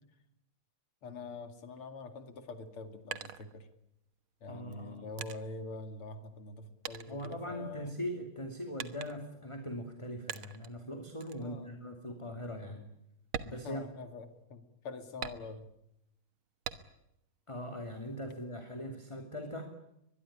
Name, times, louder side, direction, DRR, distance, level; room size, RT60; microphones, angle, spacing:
voice 1, 1.0-3.7 4.4-7.9 11.4-11.7 13.5-15.7, left 3 dB, 75° left, 9 dB, 3.3 m, -45 dB
sound 1, 2.6-4.1 4.7-6.6 6.8-8.0 8.8-9.4 10.3-10.8 11.2-11.5 11.9-12.0 12.4-12.6 13.2-14.4 15.2-15.9 16.6-17.2 17.6-18.4, right 8 dB, 70° right, 2.1 m, -44 dB
voice 2, 4.5-5.1 7.1-12.9 13.4-13.8 17.5-19.7, equal, 15° left, 5 dB, 2.7 m, -41 dB
24.0 x 21.5 x 10.0 m, 0.81 s
omnidirectional pair, 2.4 m